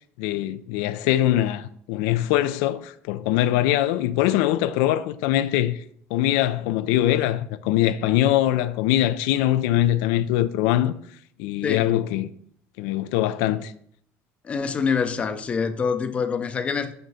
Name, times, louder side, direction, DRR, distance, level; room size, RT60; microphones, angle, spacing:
voice 1, 0.2-5.8 6.1-10.9 11.4-12.3 12.8-13.7, left 13 dB, 85° left, 0.4 m, -22 dB
voice 2, 14.4-16.9, left 5 dB, 20° left, 0.5 m, -25 dB
5.8 x 5.1 x 5.5 m
cardioid pair, 155°, 6 cm